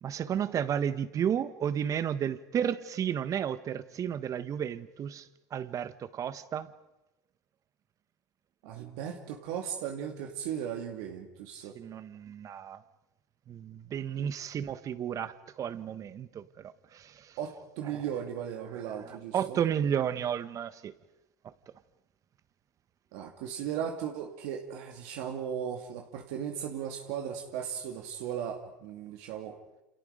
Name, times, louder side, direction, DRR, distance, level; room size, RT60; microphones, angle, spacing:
voice 1, 0.0-6.7 11.7-12.8 13.5-17.3 17.8-18.0 19.1-20.9, right 9 dB, 40° right, 1.4 m, -33 dB
voice 2, 8.6-11.7 14.2-14.3 17.4-19.6 23.1-29.6, right 9 dB, 70° right, 2.4 m, -37 dB
29.0 x 27.5 x 5.1 m
hypercardioid pair, 90°, 9 cm